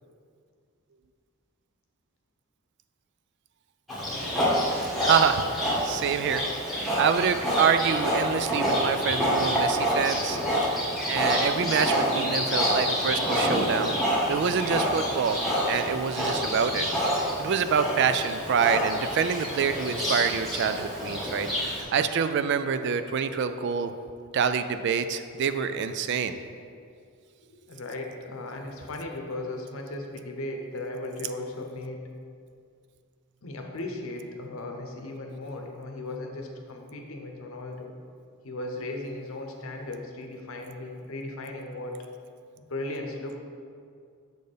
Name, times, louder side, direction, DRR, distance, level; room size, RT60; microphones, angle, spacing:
Livestock farm animals working animals, 3.9-21.8, equal, ahead, 1.4 m, -27 dB
voice 1, 5.0-10.8 11.1-14.0 14.3-15.4 15.7-16.9 17.1-23.9 24.3-26.4, right 6 dB, 50° right, 10 dB, 0.3 m, -26 dB
voice 2, 8.9-10.6 27.5-32.0 33.4-37.9 38.4-42.0 42.6-43.4, left 2 dB, 65° left, 3 dB, 0.8 m, -37 dB
6.5 x 4.3 x 5.1 m, 2.3 s
head